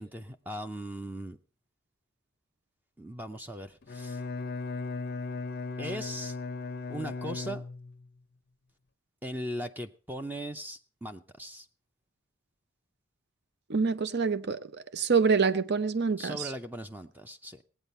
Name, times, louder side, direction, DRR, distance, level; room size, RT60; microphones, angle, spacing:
voice 1, 0.0-1.4 3.0-4.2 5.8-6.4 6.9-7.7 9.2-11.7 16.2-17.6, equal, 10° right, 0.6 m, -39 dB
Bowed string instrument, 3.8-8.1, left 3 dB, 45° left, 0.5 m, -37 dB
voice 2, 13.7-16.5, right 5 dB, 50° right, 0.7 m, -26 dB
18.0 x 9.1 x 5.4 m
head